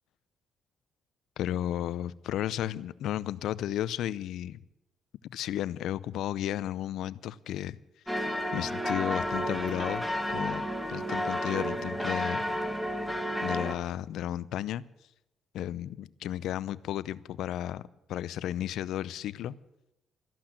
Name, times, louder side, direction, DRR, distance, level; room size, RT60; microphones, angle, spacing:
voice 1, 1.4-4.6 5.3-7.8 8.5-12.4 13.4-14.8 15.5-17.8 18.1-19.5, left 12 dB, 80° left, 18 dB, 0.6 m, -33 dB
sound 1, 8.1-13.7, equal, ahead, 1.8 m, -31 dB
14.0 x 11.5 x 8.8 m, 0.87 s
cardioid pair, 90°, 0 cm